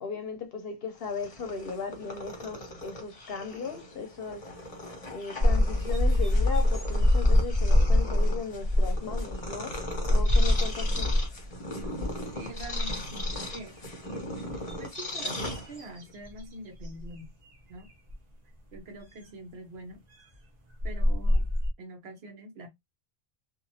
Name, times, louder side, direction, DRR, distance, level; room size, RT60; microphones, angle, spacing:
voice 1, 0.0-4.5 5.1-9.8 10.1-11.1, left 5 dB, 65° left, 0.8 m, -37 dB
Purr, 0.9-16.1, left 1 dB, 35° left, 0.9 m, -39 dB
sound 1, 5.4-11.5 11.8-12.2 12.5-13.5 14.1-16.4 16.8-17.0 18.1-18.2 20.3-20.4 20.8-21.7, left 1 dB, 40° right, 0.8 m, -24 dB
voice 2, 12.3-13.7 14.8-17.3 17.7-17.9 18.7-20.0 20.8-21.5 21.8-22.7, right 1 dB, 70° right, 1.1 m, -44 dB
2.9 x 2.3 x 2.7 m
omnidirectional pair, 1.1 m